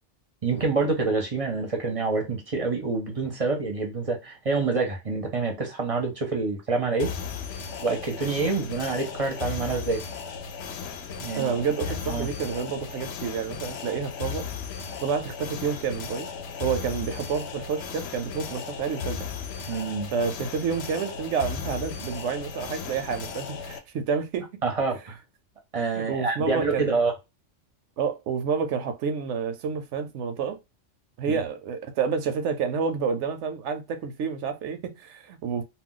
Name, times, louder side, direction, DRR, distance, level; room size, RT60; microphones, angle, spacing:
voice 1, 0.4-7.1 7.8-10.0 11.2-11.5 12.1-12.3 19.7-20.1 24.6-25.2 25.7-27.1 31.3-31.4, right 4 dB, 35° right, 0.6 m, -27 dB
sound 1, 7.0-23.8, left 6 dB, 65° left, 0.8 m, -36 dB
voice 2, 11.4-14.5 15.0-16.3 16.6-19.3 20.1-24.5 25.9-27.0 28.0-30.6 31.2-35.6, right 6 dB, 75° right, 0.9 m, -29 dB
2.4 x 2.2 x 3.7 m
omnidirectional pair, 1.3 m